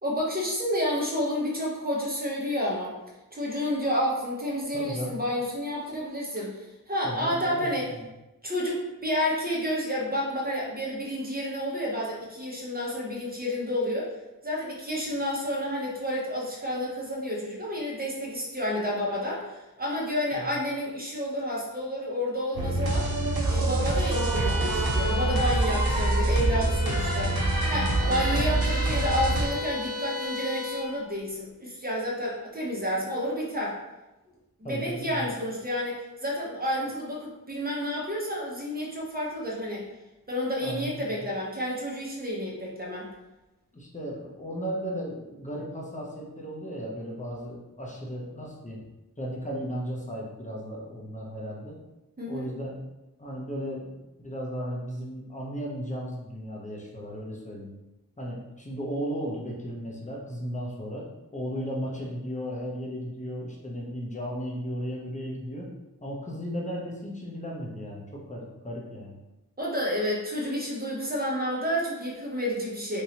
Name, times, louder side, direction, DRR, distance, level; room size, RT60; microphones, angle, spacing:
voice 1, 0.0-3.0 3.3-7.9 8.4-14.1 14.4-23.1 23.5-27.4 27.7-33.8 34.6-39.8 40.3-43.1 52.2-52.5 69.6-73.0, equal, 25° right, -4 dB, 0.9 m, -30 dB
voice 2, 4.7-5.2 7.0-8.1 20.3-20.5 28.2-28.5 34.6-35.4 40.6-41.1 43.7-48.8 49.2-51.8 52.3-52.8 53.2-57.7 58.2-61.0 61.3-65.7 66.0-69.1, equal, 20° left, -3 dB, 0.8 m, -35 dB
sound 1, 22.6-29.5, right 2 dB, 85° right, 0.6 m, -25 dB
Bowed string instrument, 23.9-30.9, left 2 dB, 50° left, 1.1 m, -35 dB
3.0 x 2.8 x 2.9 m, 1.0 s
wide cardioid pair, 60°, 36 cm